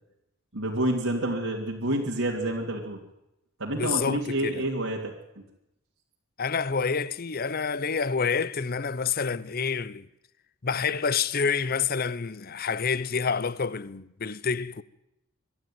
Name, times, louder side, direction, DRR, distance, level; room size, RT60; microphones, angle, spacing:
voice 1, 0.5-3.0 3.6-5.1, right 1 dB, 75° right, 3.1 m, -28 dB
voice 2, 3.8-4.7 6.4-10.1 10.6-14.8, left 5 dB, 45° left, 0.7 m, -28 dB
23.0 x 12.0 x 9.3 m
head